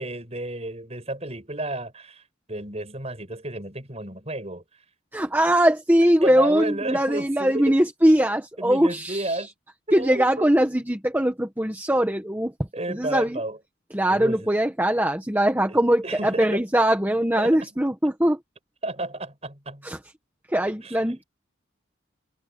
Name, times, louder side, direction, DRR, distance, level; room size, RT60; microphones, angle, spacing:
voice 1, 0.0-4.6 6.2-7.7 8.6-9.5 9.9-10.5 12.7-13.6 14.1-14.5 15.7-16.6 17.4-17.7 18.8-19.9 20.8-21.0, right 1 dB, 35° right, 7.4 m, -32 dB
voice 2, 5.1-9.4 9.9-12.5 12.9-13.4 13.9-18.4 19.8-20.0 20.5-21.2, right 1 dB, 10° right, 1.5 m, -21 dB
head